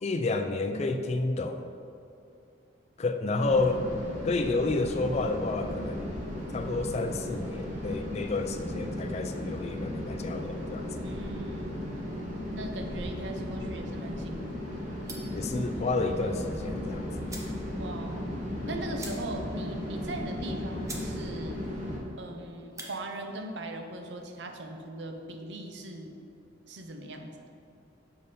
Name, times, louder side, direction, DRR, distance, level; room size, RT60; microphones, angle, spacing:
voice 1, 0.0-1.7 3.0-3.8 4.2-6.2 6.5-10.9 15.3-17.1, left 3 dB, 35° left, 7 dB, 0.4 m, -30 dB
sound 1, 3.4-22.0, left 1 dB, 40° right, 1.1 m, -36 dB
voice 2, 11.0-11.8 12.5-14.9 17.7-18.3 18.6-21.7 22.2-26.2 26.7-27.5, right 2 dB, 65° right, 4 dB, 0.6 m, -40 dB
sound 2, 15.0-15.4 16.8-16.9 17.2-17.6 18.0-18.1 18.3-18.4 18.9-19.5 19.9-20.0 20.5-20.6 20.8-21.1 21.5-21.8 22.6-22.9, right 2 dB, 15° right, 0.7 m, -43 dB
6.7 x 5.2 x 4.2 m, 2.6 s
head